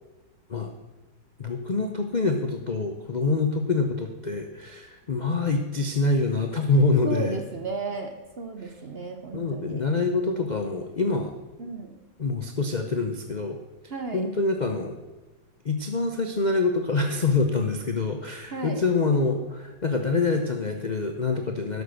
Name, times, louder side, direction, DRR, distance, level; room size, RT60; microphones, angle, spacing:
voice 1, 1.4-7.4 9.3-11.3 12.2-13.6 14.1-15.0 15.6-21.8, left 3 dB, 60° left, 5 dB, 0.4 m, -25 dB
voice 2, 7.0-9.8 11.6-12.0 13.9-14.2 18.5-18.8, right 3 dB, 50° right, 6 dB, 0.7 m, -34 dB
12.0 x 6.5 x 6.4 m, 1.2 s
omnidirectional pair, 2.0 m